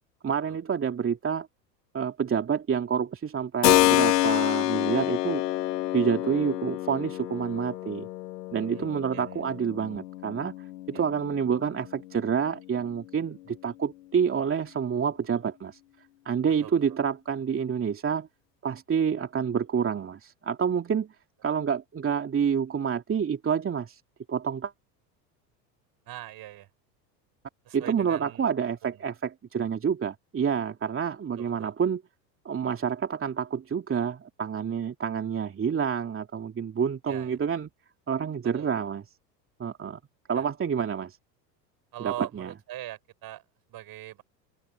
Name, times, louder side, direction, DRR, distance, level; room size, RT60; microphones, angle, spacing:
voice 1, 0.2-1.5 1.9-5.4 5.9-8.1 8.5-10.5 10.9-15.8 16.2-18.3 18.6-21.1 21.4-24.0 24.3-24.7 27.7-32.0 32.4-37.7 38.1-39.0 39.6-40.0 40.3-41.2 42.0-42.5, right 7 dB, 25° right, 2.8 m, -28 dB
Keyboard (musical), 3.6-12.2, left 16 dB, 70° left, 1.2 m, -28 dB
voice 2, 26.1-26.7 27.6-28.4 28.9-29.0 31.4-31.7 37.1-37.4 38.5-38.7 40.3-40.4 41.9-43.4 43.7-44.2, right 14 dB, 45° right, 6.6 m, -41 dB
hypercardioid pair, 80°, 49 cm